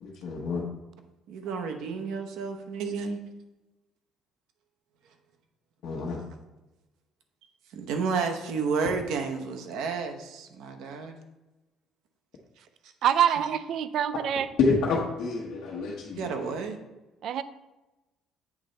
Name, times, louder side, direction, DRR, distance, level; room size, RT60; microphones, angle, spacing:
voice 1, 0.0-0.6 5.8-6.3 14.6-16.5, left 4 dB, 75° left, -4 dB, 1.0 m, -28 dB
voice 2, 1.3-3.2 7.7-11.2 13.3-13.4 16.1-16.8, right 5 dB, 80° right, 5 dB, 0.9 m, -31 dB
voice 3, 13.0-14.5 17.2-17.4, right 9 dB, 60° right, 13 dB, 0.3 m, -25 dB
8.4 x 3.2 x 3.9 m, 1.1 s
cardioid pair, 140°, 0 cm